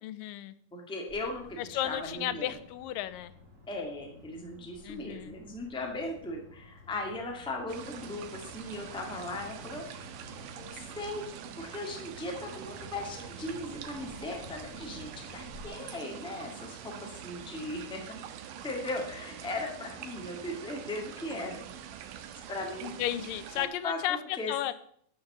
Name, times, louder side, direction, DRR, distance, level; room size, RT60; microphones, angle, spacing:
voice 1, 0.0-0.5 1.6-3.3 4.8-5.4 22.8-24.2 24.5-24.7, left 13 dB, 90° left, 14 dB, 2.4 m, -34 dB
voice 2, 0.7-2.5 3.7-11.3 11.6-18.0 18.6-21.6 22.5-22.9 23.5-24.5, left 2 dB, 5° left, 1 dB, 1.1 m, -38 dB
sound 1, 1.1-15.6, left 1 dB, 25° right, 2.0 m, -53 dB
sound 2, 7.7-23.7, right 9 dB, 85° right, 2.5 m, -45 dB
11.5 x 5.9 x 6.7 m, 0.64 s
omnidirectional pair, 3.8 m